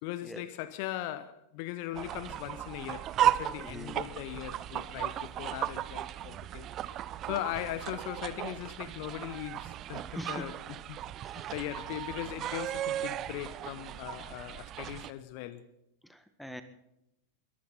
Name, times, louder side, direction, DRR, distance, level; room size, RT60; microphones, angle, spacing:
voice 1, 0.0-6.7 7.2-10.6 10.9-11.0 11.5-15.7, left 14 dB, 45° left, 1.0 m, -39 dB
sound 1, 1.9-15.1, right 12 dB, 30° right, 0.8 m, -35 dB
voice 2, 3.6-4.1 10.1-10.6 11.2-11.5 16.0-16.6, equal, ahead, 1.7 m, -43 dB
22.0 x 15.5 x 4.1 m
figure-of-eight pair, 90°, 0 cm